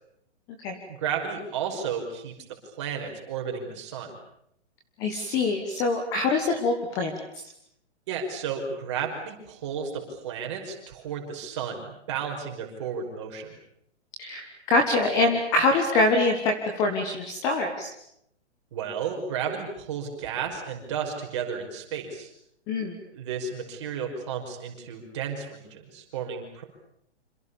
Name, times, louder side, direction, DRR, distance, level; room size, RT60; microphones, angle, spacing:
voice 1, 0.9-2.3 2.6-4.1 8.1-13.6 18.7-22.3 23.1-26.6, right 7 dB, 25° right, 3 dB, 5.5 m, -33 dB
voice 2, 5.0-7.5 14.2-17.9 22.7-23.0, left 2 dB, 10° left, 4 dB, 1.3 m, -24 dB
27.5 x 27.0 x 7.1 m, 0.75 s
hypercardioid pair, 180°, 35 cm